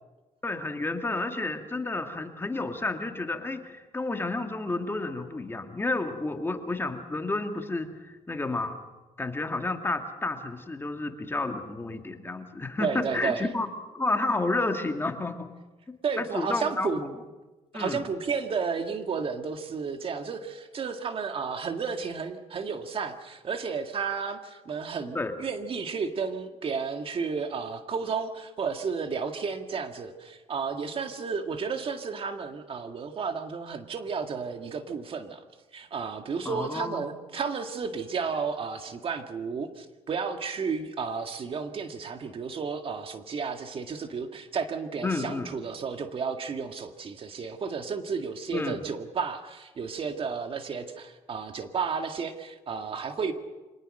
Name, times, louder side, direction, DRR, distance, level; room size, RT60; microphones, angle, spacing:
voice 1, 0.4-8.8 9.2-13.7 13.9-15.5 16.2-17.1 17.7-18.0 25.1-25.3 36.5-37.0 45.0-45.5 48.5-48.8, left 2 dB, 20° left, 5 dB, 2.2 m, -31 dB
voice 2, 12.8-13.5 16.0-17.0 17.7-35.4 35.7-53.3, right 5 dB, 45° right, 6 dB, 1.9 m, -32 dB
25.0 x 19.0 x 6.6 m, 1.2 s
cardioid pair, 95°, 13 cm